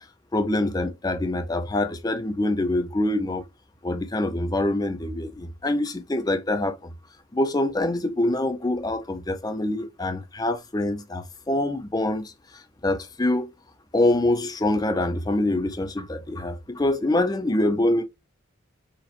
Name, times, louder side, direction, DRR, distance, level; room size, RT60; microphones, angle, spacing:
voice 1, 0.3-3.4 3.8-6.9 7.3-13.5 13.9-18.0, left 1 dB, 20° left, 0.4 m, -25 dB
4.2 x 3.0 x 2.5 m
head